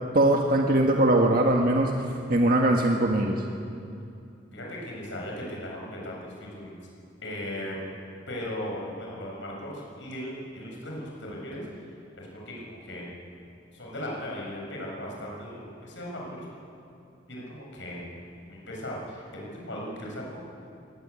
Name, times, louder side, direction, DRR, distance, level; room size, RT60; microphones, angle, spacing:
voice 1, 0.1-1.9 2.3-3.4, right 1 dB, 50° right, 1 dB, 1.7 m, -21 dB
voice 2, 4.5-6.8 7.2-7.8 8.3-11.6 12.1-13.2 13.7-16.5 17.3-18.1 18.4-20.4, left 1 dB, 80° left, -2 dB, 7.3 m, -37 dB
23.0 x 19.0 x 8.5 m, 2.6 s
head